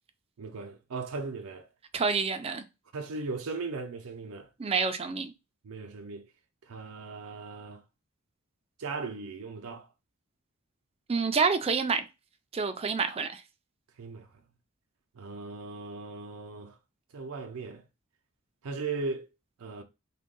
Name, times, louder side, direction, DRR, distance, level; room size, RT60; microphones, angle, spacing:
voice 1, 0.4-1.7 2.9-4.5 5.6-6.3 6.6-7.8 8.8-9.9 14.0-14.3 15.2-16.8 17.1-17.8 18.6-19.3 19.6-19.8, right 4 dB, 85° right, 0.5 m, -37 dB
voice 2, 1.9-2.6 4.6-5.3 11.1-12.0 12.5-13.4, right 5 dB, 30° right, 0.4 m, -28 dB
3.6 x 2.2 x 3.7 m
head